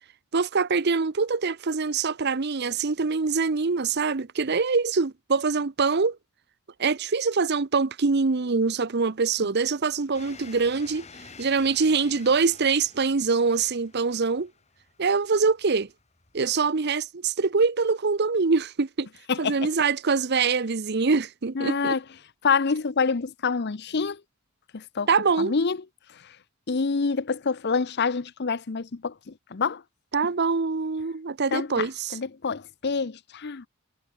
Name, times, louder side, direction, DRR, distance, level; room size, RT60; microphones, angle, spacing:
voice 1, 0.3-6.2 6.8-11.1 11.4-14.5 15.0-15.9 16.3-19.1 19.4-21.9 25.1-25.5 30.1-32.1, right 4 dB, 50° right, 0.7 m, -24 dB
sound 1, 10.1-16.6, left 4 dB, 30° left, 3.5 m, -49 dB
voice 2, 21.5-22.0 22.4-24.2 24.7-25.1 25.4-25.8 26.1-26.4 26.7-29.8 31.5-31.9 32.1-33.7, left 5 dB, 50° left, 0.7 m, -27 dB
head